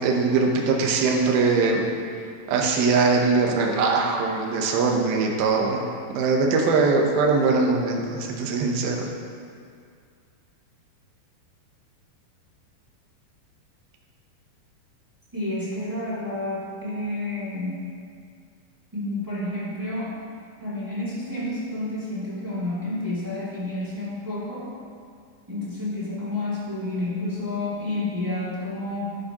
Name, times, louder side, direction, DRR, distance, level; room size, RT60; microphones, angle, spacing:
voice 1, 0.0-1.8 2.5-5.8 6.1-9.1, right 4 dB, 80° right, 0 dB, 2.8 m, -21 dB
voice 2, 15.3-17.8 18.9-20.2 20.6-24.7 25.5-29.2, left 2 dB, 10° right, -9 dB, 1.1 m, -30 dB
11.5 x 10.5 x 2.9 m, 2.2 s
omnidirectional pair, 4.4 m